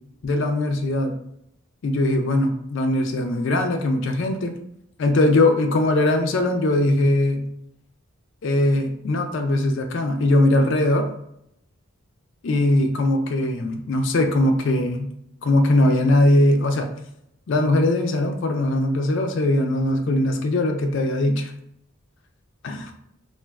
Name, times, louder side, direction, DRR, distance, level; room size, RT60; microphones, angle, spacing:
voice 1, 0.2-1.1 1.8-4.6 5.0-7.5 8.4-11.1 12.4-15.1 15.4-16.9 17.5-21.5 22.6-22.9, left 1 dB, 55° left, 4 dB, 0.3 m, -20 dB
2.4 x 2.3 x 3.3 m, 0.74 s
head